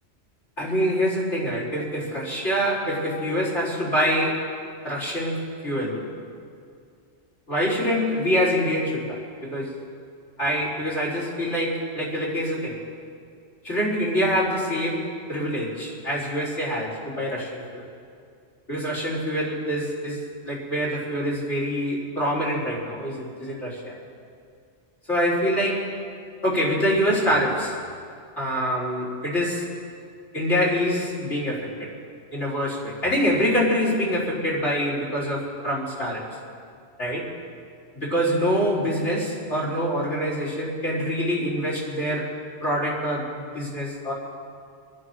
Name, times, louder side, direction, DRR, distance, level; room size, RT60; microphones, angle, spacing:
voice 1, 0.6-4.5 4.8-6.1 7.5-9.8 10.4-12.8 13.6-17.9 18.7-24.0 25.1-25.9 26.4-27.8 28.4-29.7 30.3-31.9 32.3-36.3 37.0-37.3 37.9-42.3 42.6-44.1, equal, 75° left, -4 dB, 5.1 m, -25 dB
27.5 x 10.5 x 4.7 m, 2.3 s
omnidirectional pair, 1.2 m